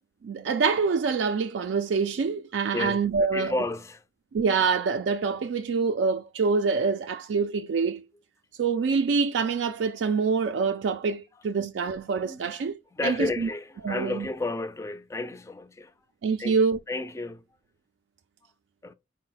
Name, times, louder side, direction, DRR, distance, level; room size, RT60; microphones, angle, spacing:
voice 1, 0.2-3.5 4.3-8.0 8.6-13.5 13.8-14.2 16.2-16.8, right 5 dB, 85° right, 0.3 m, -26 dB
voice 2, 2.7-4.0 11.6-11.7 12.2-12.6 12.9-15.9 16.4-16.6 16.9-17.5 18.8-18.9, left 2 dB, 15° left, 0.3 m, -32 dB
4.1 x 2.1 x 3.8 m
head